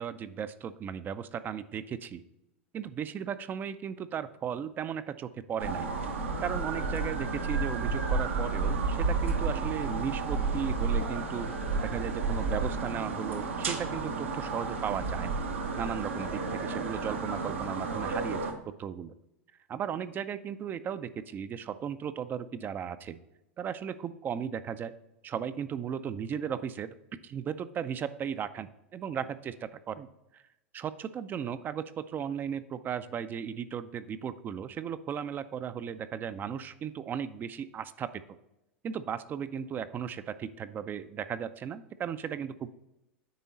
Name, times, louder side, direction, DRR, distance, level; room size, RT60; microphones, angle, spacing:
voice 1, 0.0-2.2 2.7-5.9 6.4-11.5 11.8-15.4 15.8-19.1 19.7-23.2 23.6-24.9 25.2-26.9 27.2-30.1 30.3-30.4 30.7-38.2 38.8-42.7, right 8 dB, 30° right, 13 dB, 0.4 m, -36 dB
sound 1, 5.6-18.5, right 4 dB, 80° right, 1.0 m, -31 dB
9.5 x 3.7 x 4.0 m, 0.89 s
hypercardioid pair, 95°, 7 cm